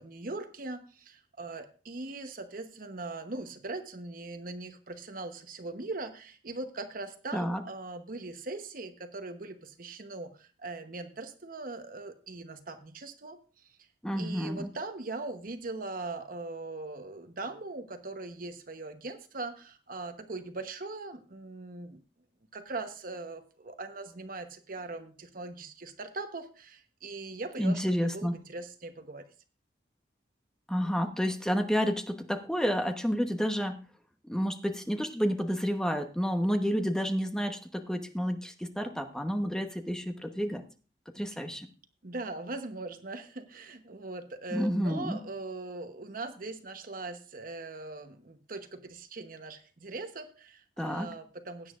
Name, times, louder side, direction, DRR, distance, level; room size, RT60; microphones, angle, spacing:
voice 1, 0.0-13.7 14.1-22.0 22.5-29.3 42.0-51.8, right 3 dB, 50° right, 8 dB, 1.0 m, -40 dB
voice 2, 14.0-14.7 27.6-28.3 30.7-33.8 34.3-40.6 41.1-41.7 44.5-45.2 50.8-51.1, equal, 5° left, 5 dB, 1.0 m, -30 dB
16.5 x 9.2 x 2.5 m, 0.36 s
head